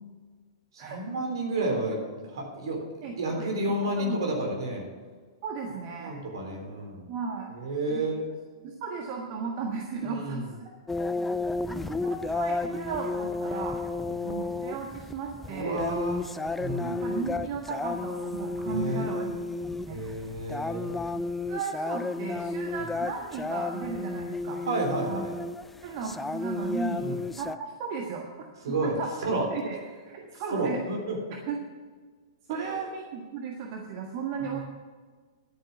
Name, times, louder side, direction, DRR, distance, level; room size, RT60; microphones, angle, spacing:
voice 1, 0.7-2.8 3.2-4.9 6.0-7.1 7.5-8.3 10.0-10.5 14.0-14.3 15.5-16.3 16.6-17.0 18.7-19.1 19.9-21.0 24.7-25.3 27.0-27.2 28.6-28.9 29.2-29.5 30.3-31.2 32.5-32.9 34.4-34.6, right 2 dB, 65° right, 1 dB, 3.6 m, -31 dB
voice 2, 3.0-3.5 4.0-4.2 5.4-6.1 7.1-7.5 7.9-8.1 8.6-10.5 11.7-13.8 14.2-15.8 16.8-19.3 19.6-20.0 21.1-24.6 25.1-25.3 25.8-27.0 27.4-28.2 28.8-29.1 29.5-29.8 30.0-30.8 31.5-31.6 32.5-34.6, right 5 dB, 40° right, 1 dB, 1.4 m, -35 dB
sound 1, 10.9-27.6, left 3 dB, 5° left, 0.4 m, -32 dB
11.0 x 8.9 x 6.0 m, 1.5 s
figure-of-eight pair, 105°, 3 cm